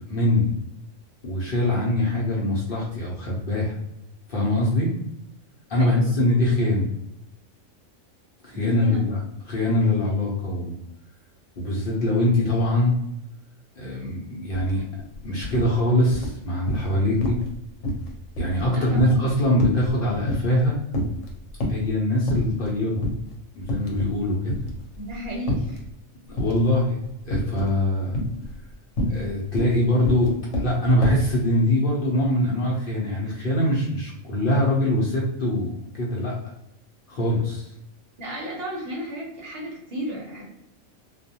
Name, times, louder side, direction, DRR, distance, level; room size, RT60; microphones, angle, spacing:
voice 1, 0.1-0.5 1.2-3.8 4.3-4.9 5.7-6.9 8.4-9.2 9.5-10.8 11.6-12.9 13.8-14.8 15.2-17.4 18.4-20.8 21.7-23.0 23.6-24.6 26.3-27.0 27.2-28.2 29.1-36.4 37.1-37.7, left 1 dB, 55° left, -4 dB, 0.8 m, -23 dB
voice 2, 5.8-6.3 8.5-9.2 18.7-19.2 25.0-25.8 38.2-40.5, equal, 55° right, -2 dB, 0.9 m, -34 dB
sound 1, 14.5-14.7 15.0-15.7 16.1-16.9 17.2-17.5 17.8-20.6 20.9-21.9 22.3-22.7 23.0-23.2 23.6-24.2 24.5-25.8 26.4-26.8 27.3-27.8 28.1-31.3, left 1 dB, 90° left, 1.0 m, -28 dB
2.4 x 2.2 x 2.7 m, 0.82 s
omnidirectional pair, 1.3 m